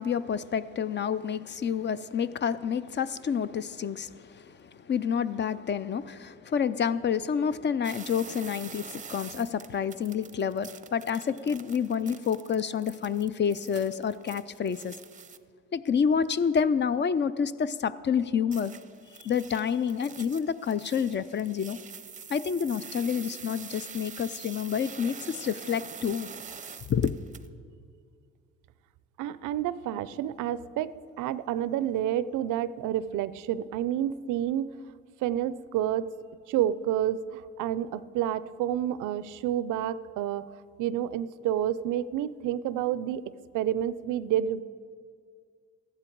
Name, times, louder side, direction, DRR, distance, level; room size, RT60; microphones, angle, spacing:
voice 1, 0.0-14.9 15.7-18.7 19.2-21.8 22.3-26.3 26.9-27.1, left 7 dB, 35° left, 15 dB, 0.4 m, -28 dB
sound 1, 7.8-15.4 18.5-27.5, right 6 dB, 25° right, 0.6 m, -45 dB
voice 2, 29.2-34.8 35.2-36.1 36.5-40.5 40.8-43.2 43.5-44.6, right 11 dB, 85° right, 16 dB, 0.5 m, -29 dB
14.5 x 11.5 x 4.6 m, 2.1 s
cardioid pair, 90°, 30 cm